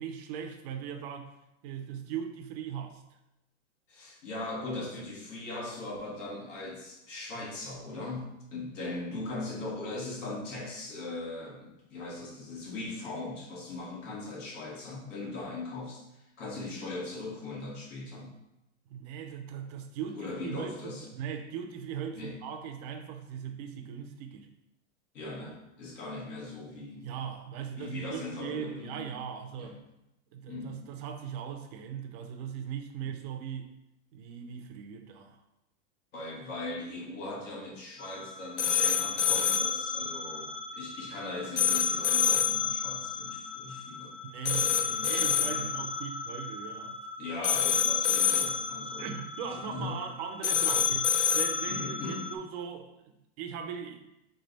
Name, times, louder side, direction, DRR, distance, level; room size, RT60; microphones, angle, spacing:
voice 1, 0.0-1.3 1.6-3.0 18.9-24.5 27.0-29.8 30.3-33.7 34.1-35.4 44.2-47.0 49.0-54.1, right 8 dB, 35° right, 4 dB, 0.4 m, -39 dB
voice 2, 3.9-16.0 16.4-18.3 20.1-21.0 22.1-22.4 25.1-27.1 27.8-29.1 29.6-29.8 30.5-30.9 33.0-33.1 36.1-44.1 44.4-45.7 47.2-49.1 49.5-50.0 51.7-52.2, left 2 dB, 90° left, -3 dB, 1.6 m, -39 dB
sound 1, 38.0-52.4, left 7 dB, 65° left, 0.6 m, -29 dB
3.8 x 3.3 x 3.9 m, 0.88 s
supercardioid pair, 160°, 37 cm